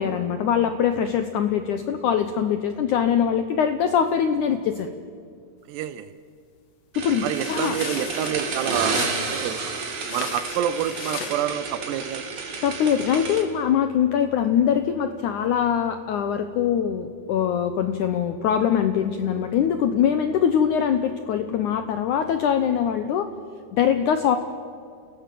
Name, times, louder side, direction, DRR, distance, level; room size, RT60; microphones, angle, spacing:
voice 1, 0.0-4.9 7.0-7.8 12.6-23.3 23.7-24.4, left 8 dB, 80° left, 9 dB, 1.8 m, -23 dB
voice 2, 5.7-6.1 7.2-9.0 9.3-9.7 10.1-12.3, right 11 dB, 85° right, 12 dB, 2.9 m, -28 dB
sound 1, 6.9-13.4, right 4 dB, 45° right, 2.9 m, -30 dB
sound 2, 7.1-11.4, left 7 dB, 55° left, 1.9 m, -37 dB
29.0 x 17.5 x 7.7 m, 2.2 s
omnidirectional pair, 4.7 m